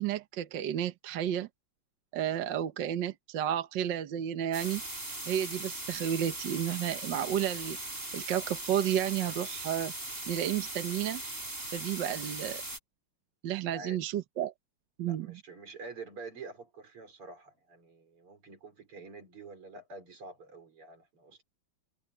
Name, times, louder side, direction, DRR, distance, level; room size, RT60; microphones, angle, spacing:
voice 1, 0.0-1.5 2.1-4.8 5.3-7.8 8.1-9.9 10.3-11.2 11.7-12.6 13.4-14.5 15.0-15.4, right 10 dB, 60° right, 1.5 m, -32 dB
sound 1, 4.5-12.8, right 2 dB, 25° right, 5.3 m, -39 dB
voice 2, 15.1-21.4, right 3 dB, 80° right, 5.6 m, -47 dB
omnidirectional pair, 2.4 m